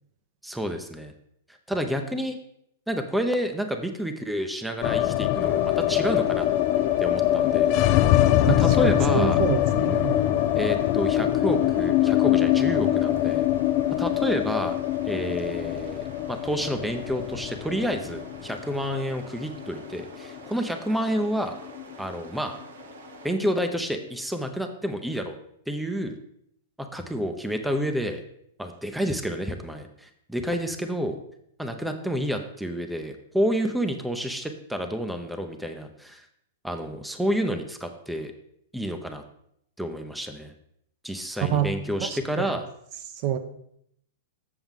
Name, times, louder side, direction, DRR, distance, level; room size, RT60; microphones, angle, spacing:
voice 1, 0.4-1.1 1.7-2.4 2.9-6.5 7.0-8.0 8.4-9.4 10.5-13.4 14.0-14.7 15.1-21.5 22.0-22.6 23.2-25.4 25.7-26.2 26.8-28.2 28.6-31.2 31.6-36.2 36.6-38.3 38.7-39.2 39.8-40.5 41.0-42.6, equal, 5° right, 6 dB, 0.7 m, -29 dB
sound 1, 4.8-20.9 21.2-21.3 21.6-22.3, left 13 dB, 45° left, 0.4 m, -23 dB
sound 2, 5.3-23.3, right 4 dB, 80° right, 1.0 m, -48 dB
voice 2, 8.5-10.2 41.4-42.6 43.1-43.4, right 9 dB, 45° right, 8 dB, 0.7 m, -27 dB
7.3 x 6.8 x 3.8 m, 0.72 s
hypercardioid pair, 115°, 0 cm